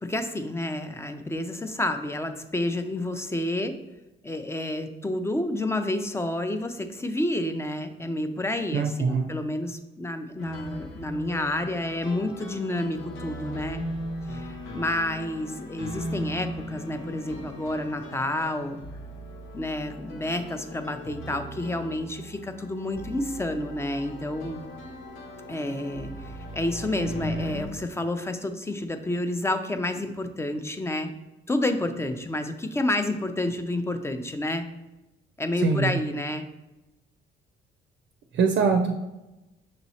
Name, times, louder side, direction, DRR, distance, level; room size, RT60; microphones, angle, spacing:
voice 1, 0.0-3.8 4.2-13.8 14.3-18.8 19.5-24.6 25.5-31.1 31.5-34.7 35.4-36.4, left 1 dB, 15° left, 8 dB, 0.4 m, -29 dB
voice 2, 8.7-9.3 35.6-36.0 38.3-39.0, right 5 dB, 65° right, 6 dB, 0.5 m, -23 dB
sound 1, 10.4-27.7, equal, 85° left, 0.8 m, -38 dB
6.2 x 2.9 x 2.8 m, 1.0 s
cardioid pair, 90°, 20 cm